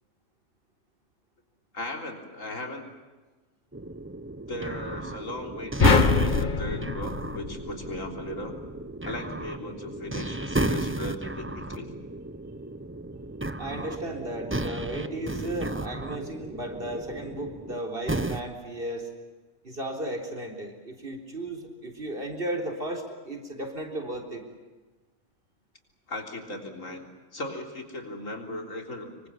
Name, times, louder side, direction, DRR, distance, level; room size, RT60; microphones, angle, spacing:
voice 1, 1.7-2.8 4.5-8.6 9.0-11.9 26.1-27.1 27.3-29.3, left 1 dB, 75° left, 3 dB, 4.0 m, -37 dB
sound 1, 3.7-17.8 18.1-18.4, right 2 dB, 10° right, 0.8 m, -33 dB
sound 2, 5.8-8.2, left 5 dB, 40° left, 1.1 m, -24 dB
voice 2, 13.6-19.1 19.6-24.4, right 1 dB, 45° right, 3 dB, 4.1 m, -35 dB
26.5 x 24.0 x 7.3 m, 1.3 s
omnidirectional pair, 1.4 m